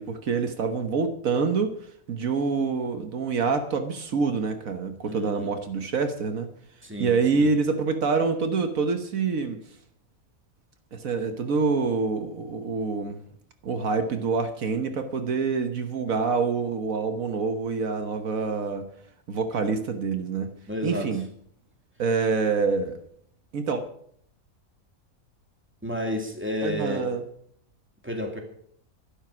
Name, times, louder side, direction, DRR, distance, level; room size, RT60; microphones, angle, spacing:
voice 1, 0.0-1.8 2.1-6.5 7.0-9.6 10.9-13.2 13.6-18.9 19.3-20.5 20.8-21.2 22.0-23.0 23.5-23.8 26.6-27.2, right 4 dB, 70° right, 7 dB, 1.5 m, -26 dB
voice 2, 5.1-5.5 6.8-7.5 20.7-21.1 25.8-27.1 28.0-28.4, left 1 dB, 10° right, 2 dB, 2.3 m, -31 dB
12.5 x 11.5 x 6.1 m, 0.65 s
omnidirectional pair, 1.5 m